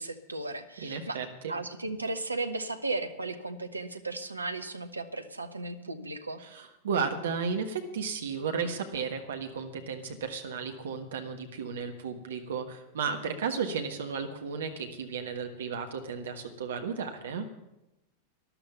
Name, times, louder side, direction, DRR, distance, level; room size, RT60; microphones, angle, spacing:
voice 1, 0.0-1.2 1.5-6.4, right 2 dB, 80° right, 8 dB, 1.1 m, -35 dB
voice 2, 0.8-1.5 6.4-17.5, right 5 dB, 65° right, 5 dB, 1.4 m, -34 dB
13.0 x 11.5 x 7.1 m, 0.91 s
figure-of-eight pair, 90°, 0 cm